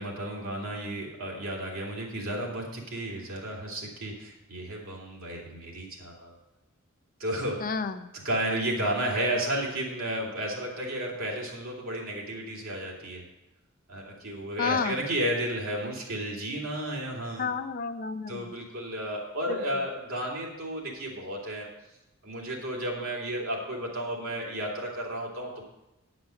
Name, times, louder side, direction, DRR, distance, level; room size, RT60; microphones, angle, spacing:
voice 1, 0.0-6.3 7.2-7.6 8.2-13.2 13.9-17.5 18.3-21.7 22.2-25.6, right 1 dB, 80° right, -3 dB, 2.7 m, -32 dB
voice 2, 7.6-8.1 14.6-15.0 17.4-18.5 19.5-19.6, left 5 dB, 45° left, 10 dB, 0.5 m, -30 dB
9.4 x 6.0 x 6.4 m, 0.96 s
head